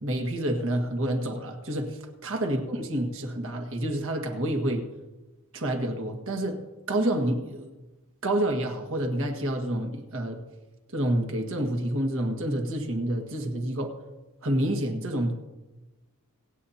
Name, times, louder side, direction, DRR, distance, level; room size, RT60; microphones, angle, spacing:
voice 1, 0.0-2.0 2.2-4.8 5.5-6.6 6.9-7.7 8.2-10.4 10.9-13.9 14.4-15.3, right 1 dB, 65° right, 3 dB, 1.7 m, -28 dB
26.0 x 8.8 x 2.9 m, 1.1 s
head